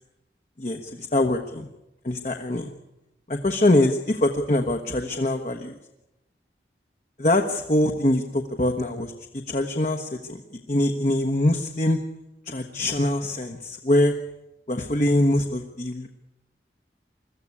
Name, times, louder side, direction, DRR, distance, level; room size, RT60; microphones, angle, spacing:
voice 1, 0.6-1.7 2.0-2.7 3.3-5.8 7.2-10.4 10.7-12.0 12.5-14.1 14.7-16.1, left 1 dB, 40° left, 5 dB, 1.2 m, -23 dB
22.0 x 14.5 x 9.7 m, 0.94 s
head